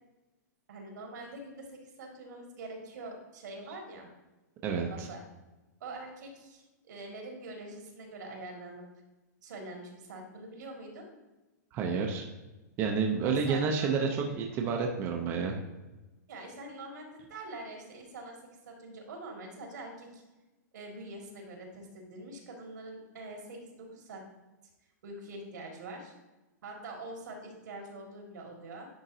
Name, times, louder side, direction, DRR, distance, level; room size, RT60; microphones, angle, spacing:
voice 1, 0.7-4.1 4.9-5.2 5.8-8.8 9.4-11.1 13.2-14.2 16.3-18.4 18.7-20.2 20.7-24.2 25.0-26.1 26.6-28.9, right 2 dB, 75° right, 1 dB, 2.0 m, -44 dB
voice 2, 4.6-5.1 11.7-12.3 12.8-15.5, right 5 dB, 25° right, 1 dB, 0.6 m, -30 dB
10.0 x 3.9 x 2.7 m, 1.1 s
hypercardioid pair, 160°, 10 cm